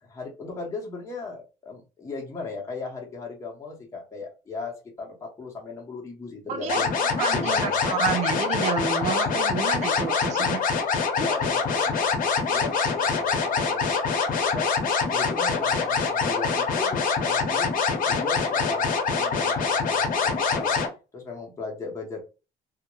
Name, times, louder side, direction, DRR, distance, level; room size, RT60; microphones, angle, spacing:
voice 1, 0.0-6.9 7.3-7.8 11.2-14.7 15.1-17.8 18.0-18.9 19.2-20.8 21.1-22.2, left 4 dB, 15° left, 0.7 m, -37 dB
voice 2, 6.5-6.8 7.2-10.6, right 6 dB, 45° right, 0.4 m, -29 dB
sound 1, 6.7-20.9, left 5 dB, 55° left, 0.7 m, -25 dB
2.3 x 2.0 x 3.0 m
cardioid pair, 110°, 17 cm